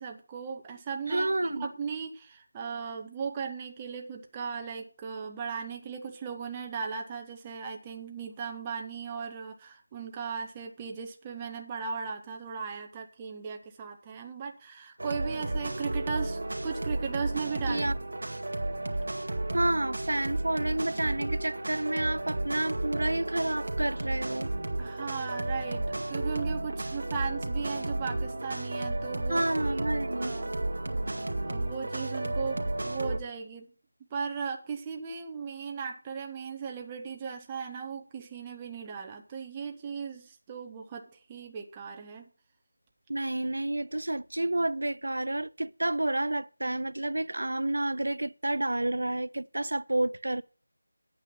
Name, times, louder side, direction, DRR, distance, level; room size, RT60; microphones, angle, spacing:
voice 1, 0.0-17.9 24.8-29.8 30.2-30.5 31.4-33.7 34.1-42.3, right 6 dB, 10° right, 0.6 m, -37 dB
voice 2, 1.1-1.7 17.7-17.9 19.5-24.5 29.3-30.4 43.1-50.4, right 1 dB, 70° right, 0.6 m, -30 dB
sound 1, 15.0-33.2, right 2 dB, 55° right, 1.8 m, -33 dB
9.7 x 8.6 x 5.5 m
figure-of-eight pair, 180°, 0 cm